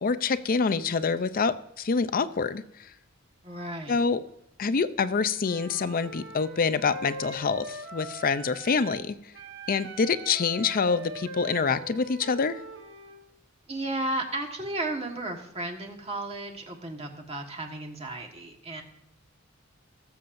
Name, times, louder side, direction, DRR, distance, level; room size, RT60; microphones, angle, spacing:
voice 1, 0.0-2.6 3.9-4.2 4.6-9.1 9.7-12.6, left 5 dB, 45° left, 13 dB, 0.5 m, -26 dB
voice 2, 3.4-4.0 13.7-18.8, right 2 dB, 30° right, 2 dB, 1.5 m, -34 dB
Wind instrument woodwind instrument, 5.4-9.1 9.3-13.2, right 2 dB, 60° right, 1.1 m, -42 dB
19.0 x 7.4 x 2.6 m, 0.83 s
head